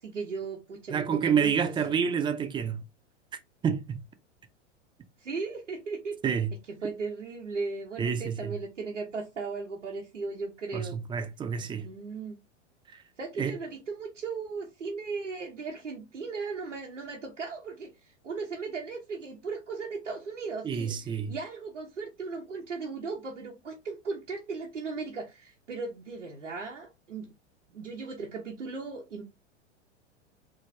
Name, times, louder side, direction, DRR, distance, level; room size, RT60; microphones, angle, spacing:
voice 1, 0.0-2.0 5.2-6.1 6.7-11.0 11.8-12.4 13.2-27.3 27.7-29.2, right 4 dB, 85° right, 1.1 m, -37 dB
voice 2, 0.9-2.8 3.6-4.0 6.2-6.5 8.0-8.6 10.7-11.9 13.4-13.6 20.6-21.3, right 7 dB, 15° right, 0.4 m, -28 dB
4.1 x 3.3 x 3.3 m
hypercardioid pair, 95°, 36 cm